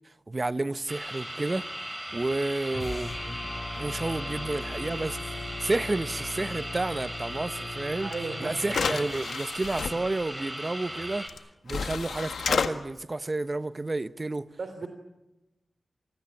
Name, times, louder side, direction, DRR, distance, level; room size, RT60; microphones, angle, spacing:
voice 1, 0.0-1.7 2.1-3.4 3.8-8.1 8.4-11.3 11.6-14.5, right 2 dB, 35° right, 1.1 m, -31 dB
sound 1, 0.9-11.3, right 1 dB, 15° right, 5.7 m, -38 dB
sound 2, 2.7-9.1, left 3 dB, 40° left, 6.1 m, -39 dB
voice 2, 8.0-9.1 14.6-14.9, right 3 dB, 65° right, 3.4 m, -37 dB
sound 3, 8.1-8.2 8.6-9.9 11.3-11.4 11.7-12.7, left 6 dB, 85° left, 1.6 m, -30 dB
27.5 x 20.0 x 8.6 m
cardioid pair, 45°, 0 cm